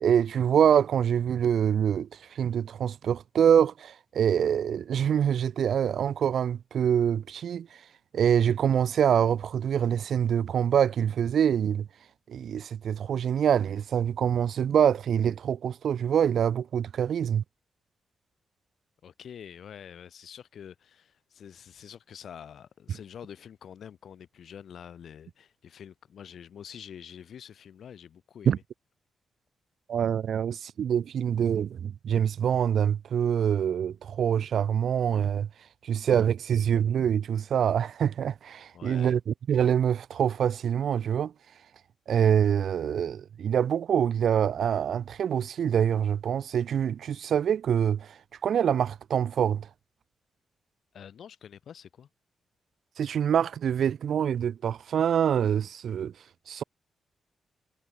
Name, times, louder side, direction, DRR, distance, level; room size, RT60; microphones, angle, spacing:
voice 1, 0.0-7.7 8.1-11.9 12.3-17.4 28.5-28.6 29.9-35.5 35.8-41.3 42.1-48.1 48.4-49.7 53.0-56.1 56.5-56.6, right 8 dB, 70° right, 0.6 m, -25 dB
voice 2, 19.0-28.6 38.7-39.2 50.9-52.1, left 8 dB, 65° left, 2.0 m, -46 dB
wide cardioid pair, 130°, 0 cm